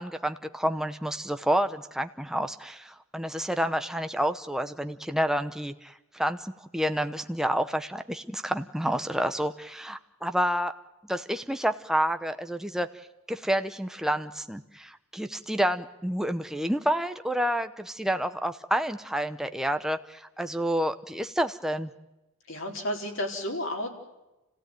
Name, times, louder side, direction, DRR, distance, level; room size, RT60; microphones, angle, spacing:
voice 1, 0.0-10.7 11.1-12.9 13.3-21.9, equal, ahead, 8 dB, 0.8 m, -29 dB
voice 2, 22.5-23.9, left 1 dB, 60° left, 1 dB, 4.1 m, -32 dB
29.5 x 16.0 x 9.1 m, 0.99 s
head